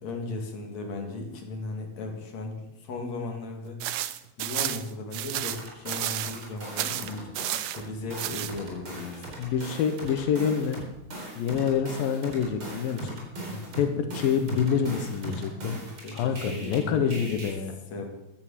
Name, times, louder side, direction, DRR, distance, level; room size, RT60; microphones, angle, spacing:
voice 1, 0.0-3.8 4.4-7.3 7.8-9.3 13.5-13.6 16.0-17.5 17.9-18.0, left 3 dB, 50° left, 1 dB, 3.8 m, -36 dB
sound 1, 3.8-6.5 6.8-7.8 8.2-8.5, right 13 dB, 75° right, 1.7 m, -31 dB
sound 2, 5.5-7.8 8.1-16.8 17.1-17.5, right 1 dB, 35° right, 4.8 m, -39 dB
voice 2, 9.4-10.8 11.4-13.2 13.8-15.8 16.1-17.8, left 7 dB, 80° left, 7 dB, 2.8 m, -27 dB
14.5 x 11.0 x 7.5 m, 0.92 s
omnidirectional pair, 4.0 m